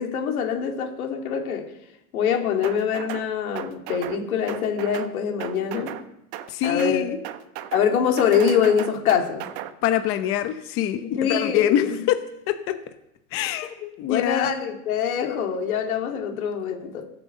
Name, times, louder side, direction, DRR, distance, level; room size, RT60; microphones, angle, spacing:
voice 1, 0.0-1.7 2.1-5.9 6.6-7.1 7.7-9.5 11.0-12.0 14.1-17.1, left 7 dB, 90° left, 3 dB, 2.7 m, -24 dB
sound 1, 2.6-3.3 3.6-4.2 4.5-5.1 5.4-6.0 6.3-7.0 7.2-7.9 8.2-9.7, right 12 dB, 45° right, 1.0 m, -35 dB
voice 2, 6.5-7.2 9.8-12.2 12.5-12.7 13.3-14.5, left 11 dB, 30° left, 9 dB, 0.8 m, -25 dB
15.5 x 6.9 x 7.2 m, 0.86 s
supercardioid pair, 145°, 42 cm